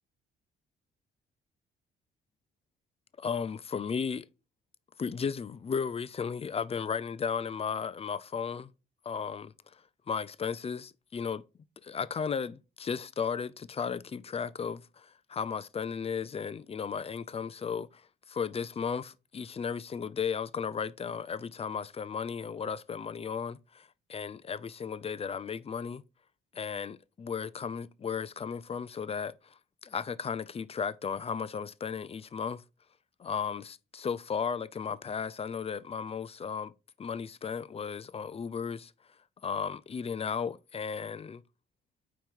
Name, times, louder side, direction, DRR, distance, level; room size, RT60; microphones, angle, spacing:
voice 1, 3.2-4.3 5.0-8.7 9.1-9.5 10.1-11.4 11.8-18.0 18.3-26.0 26.5-29.5 29.8-32.6 33.2-36.7 37.0-38.9 39.4-41.4, left 6 dB, 30° left, 0.4 m, -35 dB
9.0 x 3.0 x 3.5 m
cardioid pair, 90°, 20 cm